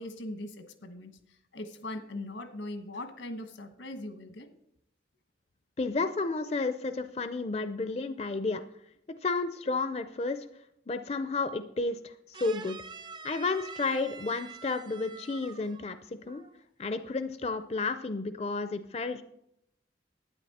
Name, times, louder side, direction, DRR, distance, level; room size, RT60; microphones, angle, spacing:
voice 1, 0.0-4.5, left 1 dB, 85° left, 8 dB, 1.3 m, -40 dB
voice 2, 5.8-8.6 9.2-10.4 10.9-12.8 13.2-16.4 16.8-19.2, left 3 dB, 35° left, 10 dB, 0.4 m, -32 dB
sound 1, 12.3-16.0 16.3-16.6, right 5 dB, 25° right, 0.4 m, -46 dB
11.5 x 9.7 x 4.2 m, 0.79 s
head